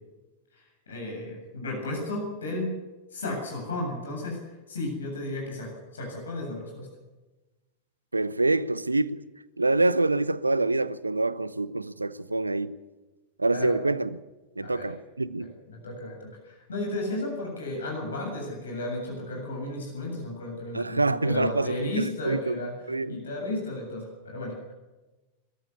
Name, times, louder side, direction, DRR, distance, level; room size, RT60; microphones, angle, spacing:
voice 1, 0.5-2.8 3.1-4.4 4.7-6.9 13.5-13.7 14.6-14.9 15.7-24.7, left 2 dB, 70° left, 7.7 m, -34 dB
voice 2, 8.1-9.2 9.6-12.8 13.4-14.1 14.6-15.5 20.7-23.2, right 2 dB, 80° right, 0.8 m, -26 dB
23.5 x 14.5 x 8.5 m
figure-of-eight pair, 90°, 0 cm